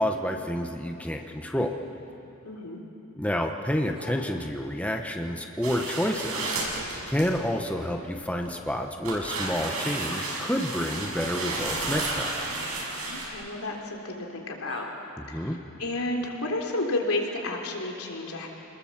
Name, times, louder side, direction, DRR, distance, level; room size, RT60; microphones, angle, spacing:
voice 1, 0.0-1.8 3.2-6.5 7.1-12.4 15.2-15.6, equal, 5° left, 3 dB, 1.1 m, -29 dB
voice 2, 2.4-2.8 13.1-14.9 15.3-18.5, left 2 dB, 85° left, 1 dB, 3.4 m, -31 dB
sound 1, 3.9-4.2 6.3-6.5 8.4-8.6 10.0-10.3 11.1-11.3 13.4-13.5 14.6-14.9, right 1 dB, 25° right, 4.1 m, -45 dB
sound 2, 5.6-7.3 8.0-8.5 9.0-13.3, right 2 dB, 85° right, 6.0 m, -32 dB
28.0 x 20.0 x 7.5 m, 2.9 s
head